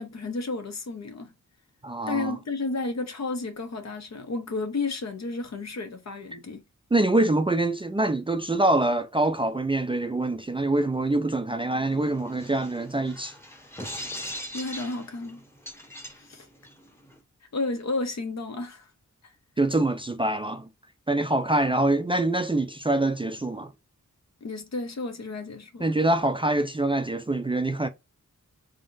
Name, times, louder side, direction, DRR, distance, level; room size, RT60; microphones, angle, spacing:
voice 1, 0.0-1.3 2.1-6.6 14.5-15.4 16.2-16.5 17.5-18.9 24.4-25.8, left 3 dB, 60° left, 0.9 m, -32 dB
voice 2, 1.8-2.3 6.9-13.3 19.6-20.7 21.1-23.7 25.8-27.9, right 2 dB, 15° right, 0.4 m, -25 dB
sound 1, 11.9-17.2, equal, 10° left, 1.0 m, -40 dB
3.6 x 3.5 x 2.5 m
wide cardioid pair, 95°, 31 cm